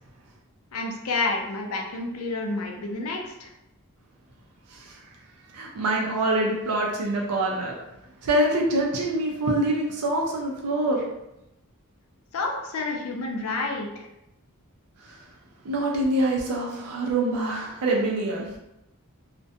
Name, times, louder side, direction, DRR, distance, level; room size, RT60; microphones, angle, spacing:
voice 1, 0.7-3.5 12.3-14.1, left 3 dB, 70° left, 1 dB, 0.5 m, -29 dB
voice 2, 5.5-7.8 8.2-11.0 15.0-15.2 15.6-18.5, right 1 dB, 90° right, -1 dB, 0.4 m, -25 dB
2.4 x 2.1 x 2.6 m, 0.89 s
head